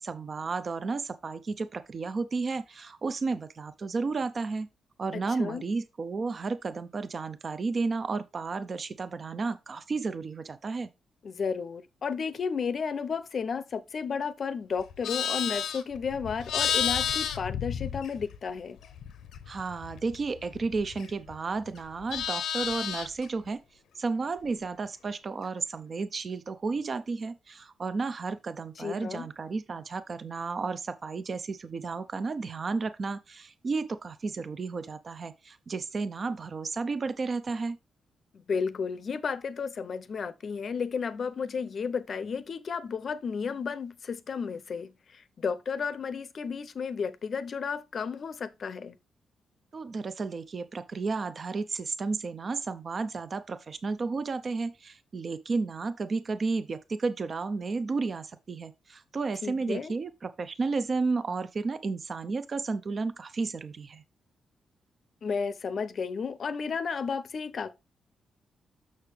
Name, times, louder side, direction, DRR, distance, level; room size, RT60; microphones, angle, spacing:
voice 1, 0.0-4.7 5.0-10.9 19.5-23.6 23.9-37.8 49.7-64.0, right 4 dB, 35° right, 0.6 m, -32 dB
voice 2, 5.1-5.6 11.2-18.8 28.8-29.3 38.3-49.0 59.4-59.9 65.2-67.7, left 6 dB, 45° left, 0.7 m, -33 dB
Livestock farm animals working animals, 14.8-18.5 18.8-21.3 21.7-23.2, left 8 dB, 90° left, 0.8 m, -32 dB
6.6 x 6.5 x 3.4 m
wide cardioid pair, 145°, 0 cm